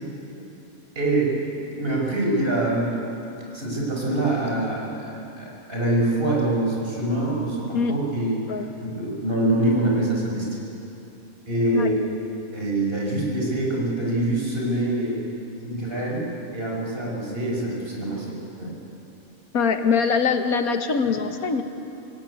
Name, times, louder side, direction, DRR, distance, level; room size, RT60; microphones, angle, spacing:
voice 1, 1.0-1.4 1.7-3.0 3.5-8.4 8.8-10.5 11.5-12.0 12.5-15.2 15.6-16.3 16.5-18.7, right 1 dB, 40° right, -3 dB, 5.8 m, -25 dB
voice 2, 19.5-21.6, left 5 dB, 90° left, 7 dB, 1.8 m, -23 dB
26.0 x 17.5 x 9.4 m, 2.9 s
omnidirectional pair, 1.5 m